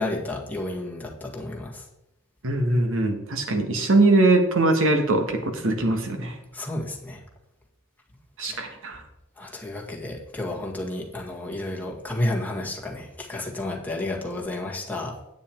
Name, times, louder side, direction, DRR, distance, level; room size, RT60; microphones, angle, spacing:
voice 1, 0.0-1.8 6.5-7.2 8.5-8.7 9.4-15.2, left 1 dB, 10° left, -1 dB, 1.7 m, -31 dB
voice 2, 2.4-6.4 8.4-9.0, right 2 dB, 65° right, 5 dB, 1.5 m, -21 dB
9.4 x 8.2 x 4.5 m, 0.88 s
head